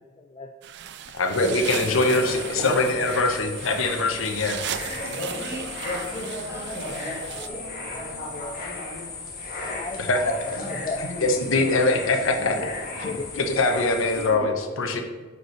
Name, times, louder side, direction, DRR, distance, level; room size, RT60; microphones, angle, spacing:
voice 1, 0.2-0.5 2.0-2.2 6.6-6.7 7.2-7.6 7.9-8.6 9.6-10.4 10.7-11.2 13.0-13.3, left 3 dB, 25° left, 4 dB, 0.4 m, -36 dB
sound 1, 0.6-7.5, right 10 dB, 55° right, 0.4 m, -37 dB
voice 2, 1.1-4.6 10.0-10.2 10.6-10.7 11.2-12.6 13.0-15.0, left 2 dB, 70° left, 4 dB, 0.8 m, -23 dB
sound 2, 1.3-14.3, left 2 dB, 45° left, 1.4 m, -34 dB
voice 3, 4.7-7.0 7.3-7.9 12.4-12.6 14.2-15.0, right 1 dB, 15° right, -4 dB, 1.8 m, -41 dB
5.1 x 4.8 x 6.0 m, 1.3 s
head